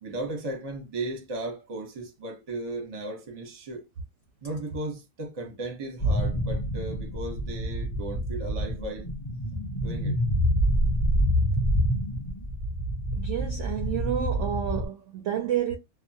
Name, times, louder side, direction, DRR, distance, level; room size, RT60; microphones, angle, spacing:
voice 1, 0.0-3.9 4.4-9.1 9.8-10.2, right 2 dB, 35° right, 0.6 m, -36 dB
sound 1, 6.0-14.9, equal, 50° left, 0.3 m, -27 dB
voice 2, 13.1-15.8, right 10 dB, 70° right, 0.7 m, -30 dB
2.8 x 2.1 x 2.7 m
omnidirectional pair, 1.8 m